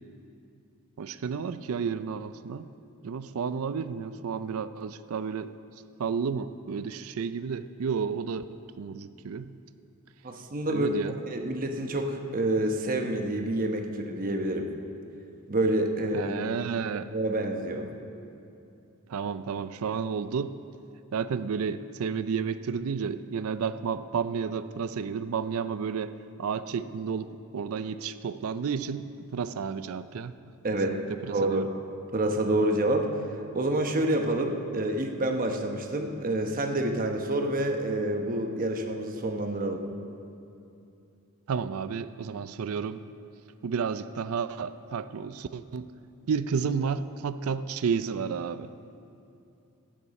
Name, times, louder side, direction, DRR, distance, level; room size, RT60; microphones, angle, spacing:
voice 1, 1.0-2.7 3.0-5.5 6.0-8.4 8.8-9.5 10.7-11.2 16.1-17.1 19.1-20.5 21.1-26.1 26.4-30.3 30.7-31.7 41.5-43.0 43.6-45.9 46.3-48.7, right 6 dB, 80° right, 13 dB, 0.4 m, -31 dB
voice 2, 10.2-10.9 11.3-14.7 15.5-16.3 17.1-17.9 30.6-31.0 31.3-31.6 32.1-33.1 33.5-39.8, right 1 dB, 40° right, 4 dB, 1.0 m, -28 dB
16.5 x 12.0 x 4.2 m, 2.6 s
head